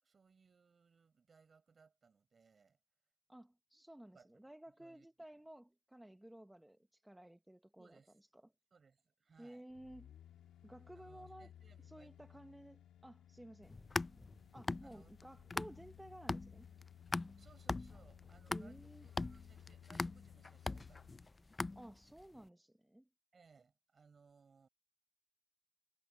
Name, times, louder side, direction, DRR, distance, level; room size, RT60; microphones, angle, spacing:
voice 1, 0.0-2.8 4.1-4.4 4.8-5.1 7.8-8.2 8.7-9.6 10.9-12.4 14.8-15.1 17.4-21.5 23.3-24.7, right 5 dB, 30° right, 4.5 m, -67 dB
voice 2, 3.3-8.4 9.4-10.1 10.6-11.5 11.8-13.8 14.5-16.7 18.5-19.1 21.8-23.1, right 1 dB, 5° right, 0.8 m, -55 dB
sound 1, 9.7-21.3 21.7-21.8, left 10 dB, 55° left, 1.7 m, -60 dB
sound 2, 13.6-16.0 16.3-22.2, left 3 dB, 15° left, 0.4 m, -41 dB
cardioid pair, 100°, 0 cm